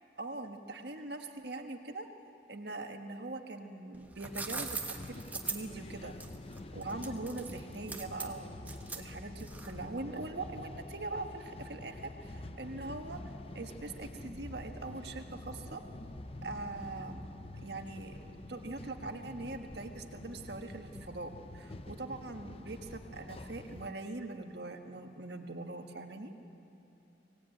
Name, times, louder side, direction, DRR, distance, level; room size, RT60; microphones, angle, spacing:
voice 1, 0.2-2.1 2.5-6.1 6.7-8.6 8.9-13.2 13.5-15.8 16.4-17.2 17.6-18.2 18.5-26.3, right 2 dB, 65° right, 5 dB, 1.5 m, -42 dB
sound 1, 3.9-9.9, right 4 dB, 10° right, 1.2 m, -41 dB
sound 2, 4.2-23.9, left 1 dB, 30° left, 0.7 m, -47 dB
23.5 x 17.5 x 9.1 m, 2.9 s
head